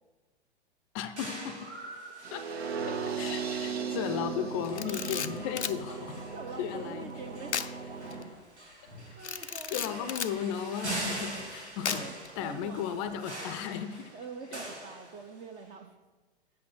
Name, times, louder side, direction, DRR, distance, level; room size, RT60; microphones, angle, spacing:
voice 1, 0.9-1.7 2.3-2.4 3.2-6.2 6.6-7.1 9.7-12.1 12.4-14.1, left 9 dB, 30° left, 10 dB, 0.5 m, -35 dB
sound 1, 1.2-15.6, right 1 dB, 85° right, 2.0 m, -43 dB
sound 2, 2.2-8.2, right 5 dB, 70° right, 0.9 m, -37 dB
Camera, 4.6-5.8 7.5-7.7 8.1-8.2 9.2-10.4 11.8-12.3, left 7 dB, 85° left, 0.5 m, -34 dB
voice 2, 6.3-7.6 9.2-10.4 11.9-12.1 12.4-13.5 14.1-15.9, right 5 dB, 20° right, 6 dB, 0.5 m, -45 dB
8.5 x 5.6 x 5.9 m, 1.2 s
figure-of-eight pair, 100°, 33 cm